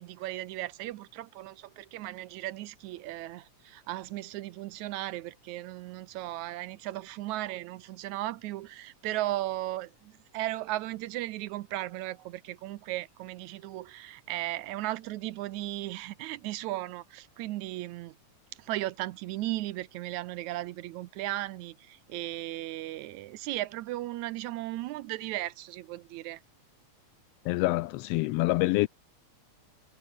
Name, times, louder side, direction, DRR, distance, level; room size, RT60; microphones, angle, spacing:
voice 1, 0.0-18.2 18.6-26.4, right 16 dB, 80° right, 2.1 m, -36 dB
voice 2, 27.4-28.9, left 19 dB, 85° left, 1.4 m, -26 dB
omnidirectional pair, 3.3 m